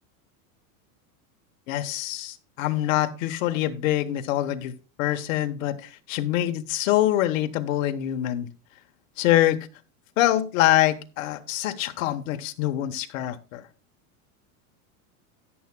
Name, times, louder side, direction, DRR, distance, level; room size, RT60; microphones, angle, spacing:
voice 1, 1.7-8.5 9.2-9.7 10.2-13.6, left 14 dB, 70° left, 8 dB, 1.3 m, -25 dB
13.0 x 9.7 x 2.3 m, 0.33 s
supercardioid pair, 140°, 42 cm